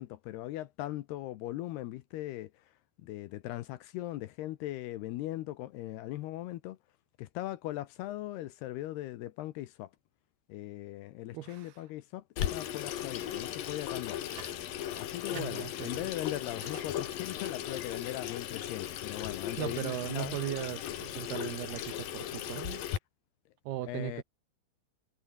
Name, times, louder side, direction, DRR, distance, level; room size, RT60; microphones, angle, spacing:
voice 1, 0.0-2.6 3.0-6.8 7.2-9.9 10.5-14.2 15.0-20.4 23.9-24.2, left 15 dB, 75° left, 2.7 m, -39 dB
voice 2, 11.3-11.7 15.3-16.1 19.6-22.8 23.7-24.2, right 14 dB, 70° right, 2.7 m, -38 dB
Water tap faucet / Sink (filling or washing), 12.4-23.0, left 11 dB, 60° left, 2.9 m, -37 dB
sound 1, 13.1-18.4, right 4 dB, 45° right, 7.9 m, -54 dB
omnidirectional pair, 5.3 m